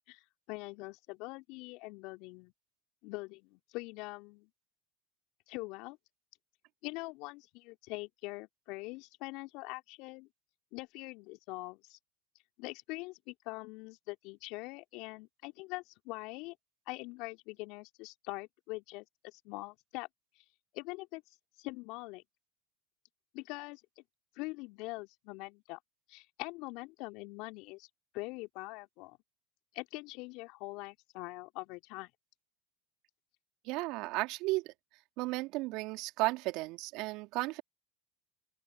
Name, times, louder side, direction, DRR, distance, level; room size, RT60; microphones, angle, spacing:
voice 1, 0.5-2.5 3.0-4.5 5.5-6.0 6.8-10.3 10.7-12.0 12.6-16.5 16.9-20.1 20.7-21.2 21.6-22.2 23.3-23.8 24.4-25.8 26.1-27.9 28.1-29.2 29.7-32.1, left 24 dB, 60° left, 3.0 m, -43 dB
voice 2, 33.7-34.7 35.2-37.6, right 22 dB, 60° right, 2.5 m, -34 dB
open air
hypercardioid pair, 80°, 0 cm